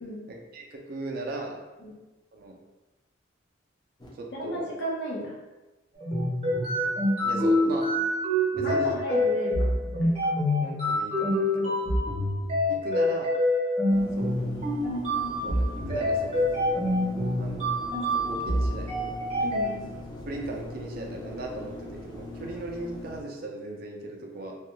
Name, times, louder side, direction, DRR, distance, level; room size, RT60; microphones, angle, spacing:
voice 1, 0.3-1.6 2.3-2.6 4.2-4.7 7.2-7.9 8.5-9.0 10.6-11.8 12.7-13.3 14.2-14.3 15.4-16.4 17.4-17.7 18.3-19.2 20.3-24.6, right 2 dB, 50° right, 1 dB, 0.4 m, -37 dB
sound 1, 4.0-4.1 13.9-23.2, left 2 dB, 20° left, 0.4 m, -41 dB
voice 2, 4.3-5.3 8.6-9.7 10.0-10.2 19.4-19.9, equal, 65° left, -4 dB, 0.7 m, -34 dB
sound 2, 6.0-19.7, left 1 dB, 30° right, 0.7 m, -26 dB
2.3 x 2.2 x 2.9 m, 1.1 s
head